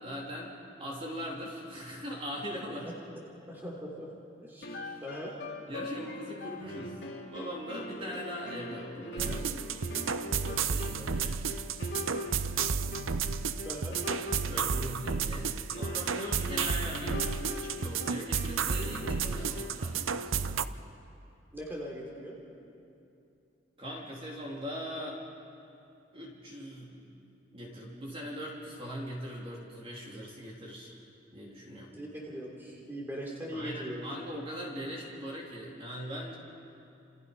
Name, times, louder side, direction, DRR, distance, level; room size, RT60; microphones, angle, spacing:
voice 1, 0.0-2.9 4.6-5.0 5.7-9.8 10.4-11.4 14.5-20.7 23.8-25.2 26.1-27.1 27.5-31.0 31.3-32.0 33.5-36.4, equal, 25° right, -3 dB, 3.4 m, -41 dB
voice 2, 3.5-4.1 4.4-4.7 5.0-5.3 13.6-14.0 21.5-22.4 31.9-34.1, equal, 10° right, -3 dB, 3.3 m, -40 dB
sound 1, 4.6-19.9, left 1 dB, 55° left, 3.3 m, -42 dB
sound 2, 9.2-20.6, right 6 dB, 85° right, 0.7 m, -32 dB
30.0 x 28.0 x 5.4 m, 2.7 s
head